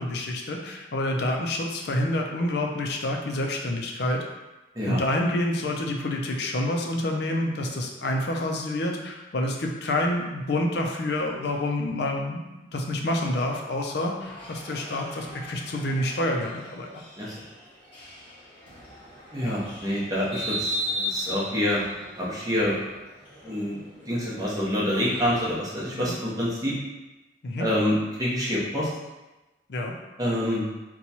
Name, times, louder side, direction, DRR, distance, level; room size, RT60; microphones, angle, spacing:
voice 1, 0.0-4.2 4.9-12.4 12.7-17.0 19.4-19.5 26.0-26.2 27.4-27.7 29.7-29.9, left 1 dB, 55° left, 1 dB, 0.4 m, -28 dB
sound 1, 14.2-25.5, equal, 25° left, 1.1 m, -37 dB
voice 2, 19.3-21.8 22.2-22.8 23.4-23.8 24.1-26.7 27.6-28.9 30.2-30.7, left 1 dB, 20° right, -6 dB, 0.7 m, -27 dB
2.9 x 2.2 x 4.0 m, 1.1 s
head